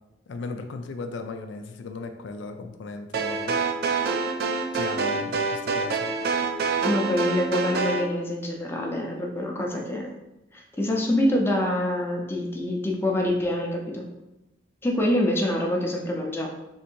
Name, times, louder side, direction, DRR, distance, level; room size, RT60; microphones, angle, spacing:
voice 1, 0.3-3.6 4.7-6.1, left 3 dB, 80° left, 6 dB, 0.4 m, -36 dB
sound 1, 3.1-8.1, right 4 dB, 55° right, 0.4 m, -26 dB
voice 2, 6.8-10.0 10.5-14.0 14.8-16.5, left 1 dB, 10° left, -1 dB, 0.5 m, -26 dB
3.6 x 2.6 x 4.4 m, 0.96 s
head